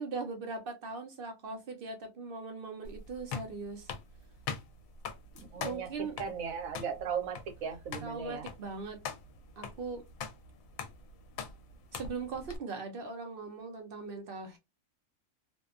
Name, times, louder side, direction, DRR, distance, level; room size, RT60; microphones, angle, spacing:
voice 1, 0.0-3.9 5.6-6.2 8.0-9.0 9.6-10.0 11.9-14.6, right 4 dB, 55° right, 0.6 m, -40 dB
sound 1, 2.8-12.6, left 6 dB, 75° left, 1.0 m, -43 dB
voice 2, 5.4-8.5, right 7 dB, 75° right, 1.1 m, -37 dB
2.6 x 2.2 x 2.3 m
omnidirectional pair, 1.5 m